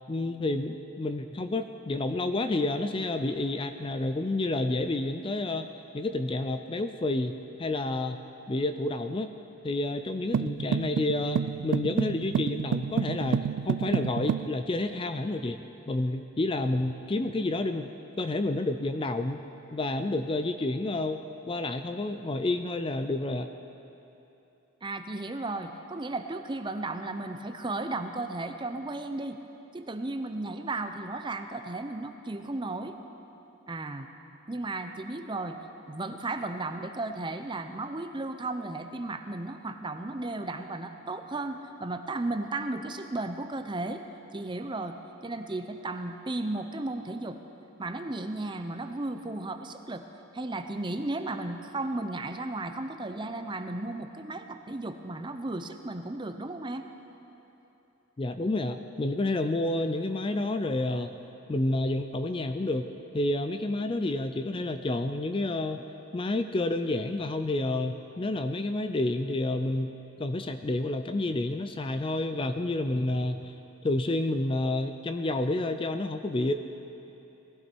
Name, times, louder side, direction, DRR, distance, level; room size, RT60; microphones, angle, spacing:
voice 1, 0.1-5.7 5.9-7.3 7.6-8.2 8.5-9.3 9.6-15.6 15.9-17.9 18.2-19.4 19.7-21.2 21.5-23.5 58.2-61.1 61.5-62.9 63.1-65.8 66.1-69.9 70.2-73.5 73.8-76.5, left 2 dB, 25° left, 8 dB, 0.3 m, -29 dB
sound 1, 10.3-14.5, right 7 dB, 90° right, 0.3 m, -29 dB
voice 2, 24.8-29.4 29.7-33.0 33.7-34.1 34.5-35.6 35.8-44.0 44.3-45.0 45.2-47.4 47.8-50.0 50.3-56.9, right 2 dB, 20° right, 7 dB, 0.6 m, -34 dB
19.0 x 15.0 x 4.5 m, 3.0 s
head